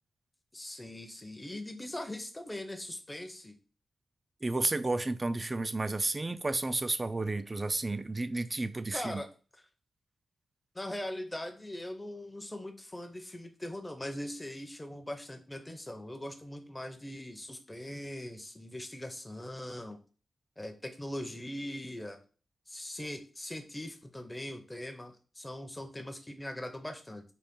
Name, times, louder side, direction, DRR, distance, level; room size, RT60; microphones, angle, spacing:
voice 1, 0.5-3.5 8.9-9.3 10.7-20.0 20.6-22.2 22.7-27.2, left 1 dB, 15° left, 0.7 m, -41 dB
voice 2, 4.4-9.2, right 2 dB, 30° right, 0.3 m, -32 dB
3.9 x 2.5 x 3.6 m
cardioid pair, 85°, 0 cm